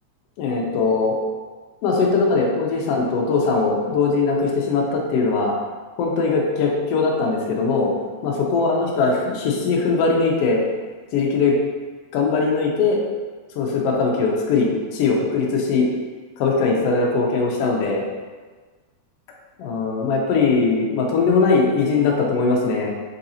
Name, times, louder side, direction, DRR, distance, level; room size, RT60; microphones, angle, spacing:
voice 1, 0.4-1.2 1.8-5.5 6.0-7.9 8.2-10.6 11.1-11.5 12.1-13.0 13.6-15.9 16.4-18.0 19.6-22.9, left 4 dB, 80° left, -1 dB, 1.4 m, -20 dB
4.8 x 3.8 x 2.7 m, 1.4 s
omnidirectional pair, 3.5 m